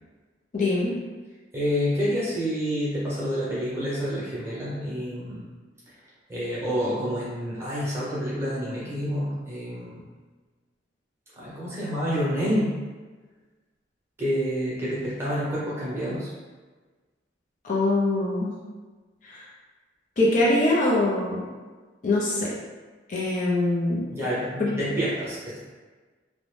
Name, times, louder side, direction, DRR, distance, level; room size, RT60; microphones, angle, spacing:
voice 1, 0.5-1.0 17.6-18.5 19.2-19.5 20.2-21.5 22.0-22.5 23.1-24.0 24.6-24.8, left 2 dB, 45° left, -5 dB, 0.4 m, -23 dB
voice 2, 1.5-5.4 6.3-10.0 11.4-12.7 14.2-16.3 24.1-25.6, equal, 15° right, -9 dB, 0.8 m, -28 dB
2.5 x 2.0 x 3.1 m, 1.3 s
head